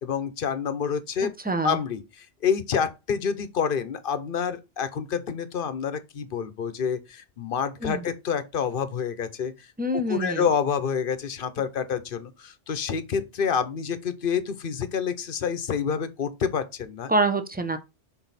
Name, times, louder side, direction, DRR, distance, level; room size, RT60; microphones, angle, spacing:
voice 1, 0.0-1.3 1.6-9.7 10.1-17.1, left 7 dB, 55° left, 0.9 m, -28 dB
voice 2, 1.4-1.8 7.8-8.0 9.8-10.4 17.1-17.8, right 2 dB, 10° right, 0.5 m, -25 dB
6.1 x 4.0 x 4.0 m
omnidirectional pair, 1.1 m